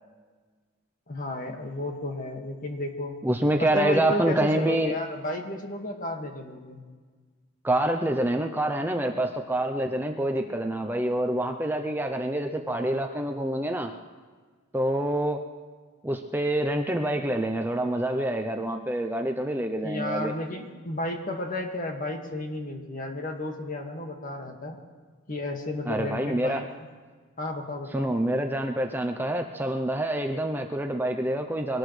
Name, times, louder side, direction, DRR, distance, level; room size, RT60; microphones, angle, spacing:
voice 1, 1.1-3.2 3.6-6.8 19.7-24.8 25.3-26.7 27.4-28.1, left 1 dB, 40° left, 2 dB, 1.9 m, -33 dB
voice 2, 3.2-4.9 7.6-13.9 14.7-15.4 16.0-20.3 25.9-26.6 27.9-31.8, right 1 dB, 10° right, 4 dB, 0.6 m, -26 dB
23.5 x 18.5 x 3.3 m, 1.5 s
head